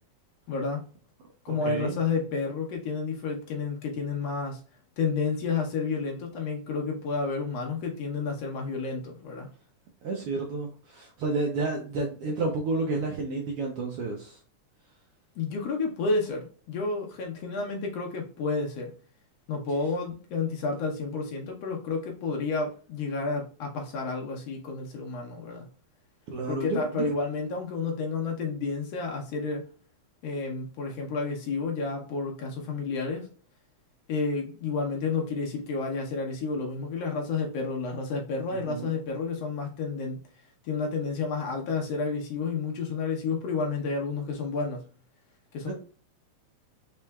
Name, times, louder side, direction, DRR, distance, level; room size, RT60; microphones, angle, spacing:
voice 1, 0.5-0.8 1.4-4.6 5.0-9.5 15.4-18.9 19.5-25.7 26.5-29.6 30.2-33.3 34.1-40.2 40.6-44.9 45.5-45.7, left 4 dB, 70° left, 1.8 m, -30 dB
voice 2, 1.5-2.0 10.0-14.4 26.3-27.1 38.5-38.9 45.6-45.7, right 3 dB, 75° right, 1.4 m, -31 dB
4.6 x 4.3 x 2.2 m
omnidirectional pair, 3.3 m